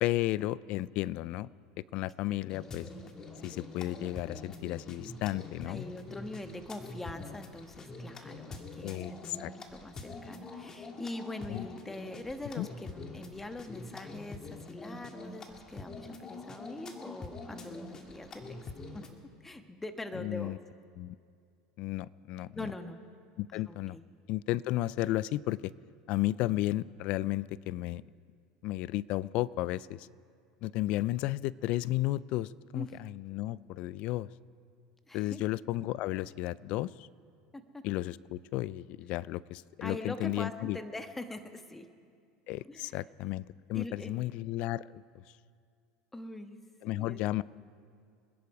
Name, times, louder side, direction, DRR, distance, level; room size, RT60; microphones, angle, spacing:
voice 1, 0.0-1.5 1.9-2.9 3.4-5.8 8.8-9.5 11.5-11.7 12.6-12.7 20.2-20.6 21.0-21.2 21.8-22.6 23.4-24.0 24.3-25.7 26.1-28.0 28.6-30.1 30.6-34.3 35.1-37.1 37.8-40.8 42.5-45.0 46.8-47.4, left 16 dB, 60° left, 21 dB, 0.4 m, -33 dB
sound 1, 2.5-19.2, left 3 dB, 30° left, 1.8 m, -45 dB
voice 2, 5.7-18.6 18.9-19.0 19.4-20.6 22.5-23.0 23.5-24.0 32.7-33.0 35.1-35.4 37.5-37.8 39.8-41.9 42.7-43.0 43.7-44.3 46.1-46.6 46.9-47.2, left 1 dB, 10° left, 7 dB, 1.3 m, -43 dB
26.5 x 10.5 x 4.9 m, 2.3 s
hypercardioid pair, 100°, 2 cm